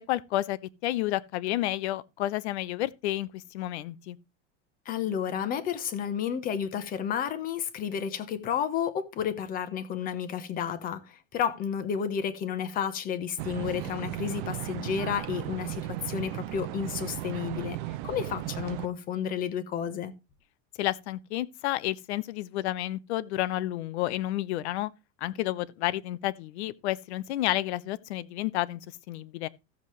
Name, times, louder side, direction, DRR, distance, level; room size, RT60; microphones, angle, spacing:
voice 1, 0.0-4.2 20.8-24.9 25.2-28.8 29.1-29.5, left 15 dB, 60° left, 0.8 m, -30 dB
voice 2, 4.8-20.1, left 8 dB, 25° left, 1.0 m, -31 dB
sound 1, 13.4-18.9, right 16 dB, 45° right, 0.6 m, -36 dB
15.0 x 7.3 x 3.2 m
supercardioid pair, 165°, 36 cm